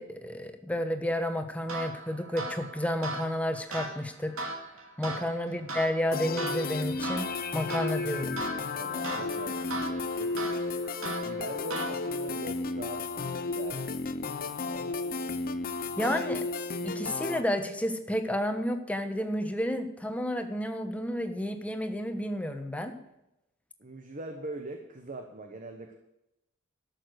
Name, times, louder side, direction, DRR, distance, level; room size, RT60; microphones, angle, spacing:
voice 1, 0.0-4.5 5.0-8.4 16.0-16.4 16.8-22.9, left 1 dB, 5° left, 6 dB, 1.1 m, -31 dB
sound 1, 1.7-12.3, right 2 dB, 80° right, 2.7 m, -39 dB
sound 2, 6.1-17.4, left 3 dB, 45° left, 0.7 m, -33 dB
voice 2, 8.8-10.4 11.2-14.0 23.8-25.9, right 2 dB, 40° right, 4 dB, 1.1 m, -42 dB
12.5 x 6.8 x 8.0 m, 0.89 s
head